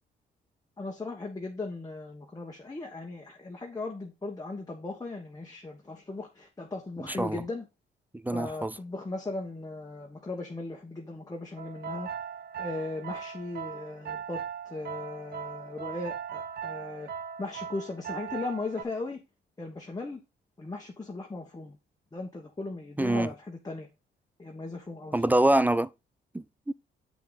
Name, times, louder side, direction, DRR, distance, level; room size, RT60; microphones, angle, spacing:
voice 1, 0.8-7.7 8.3-12.1 12.6-17.1 17.4-19.2 19.6-20.2 20.6-21.8 22.1-23.9 24.4-25.2, left 3 dB, 20° left, 1.4 m, -37 dB
voice 2, 7.0-7.4 8.1-8.7 23.0-23.3 25.1-25.9 26.3-26.7, right 1 dB, 10° right, 0.3 m, -25 dB
sound 1, 11.6-18.8, right 8 dB, 50° right, 0.7 m, -39 dB
7.9 x 5.5 x 4.0 m
cardioid pair, 90°, 20 cm